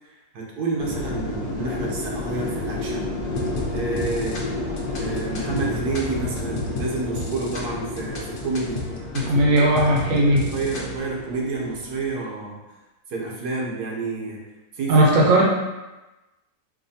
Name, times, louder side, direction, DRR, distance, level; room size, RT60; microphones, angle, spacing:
voice 1, 0.0-3.1 3.7-4.4 4.9-8.8 9.3-9.7 10.1-12.6 13.1-14.4 14.7-15.1, right 3 dB, 85° right, -3 dB, 1.3 m, -29 dB
sound 1, 0.8-12.1, left 2 dB, 50° left, 0.9 m, -31 dB
sound 2, 3.2-11.0, left 2 dB, 75° left, 0.5 m, -34 dB
voice 2, 9.1-10.4 14.9-15.4, right 1 dB, 65° right, -2 dB, 1.0 m, -17 dB
4.8 x 2.5 x 2.7 m, 1.1 s
omnidirectional pair, 1.7 m